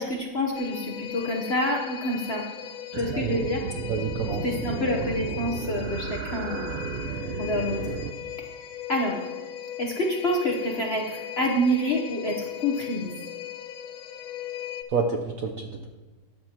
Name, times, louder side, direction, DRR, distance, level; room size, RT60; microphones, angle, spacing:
voice 1, 0.0-2.4 3.0-3.6 4.4-6.7 7.4-7.8 8.9-9.2 9.8-13.1, equal, 45° left, 0 dB, 0.9 m, -27 dB
sound 1, 0.5-14.8, left 10 dB, 80° left, 1.5 m, -38 dB
sound 2, 2.9-8.1, right 7 dB, 85° right, 1.6 m, -33 dB
voice 2, 3.8-4.6 14.9-15.9, right 5 dB, 65° right, 3 dB, 0.8 m, -29 dB
14.0 x 10.0 x 2.9 m, 1.2 s
omnidirectional pair, 2.3 m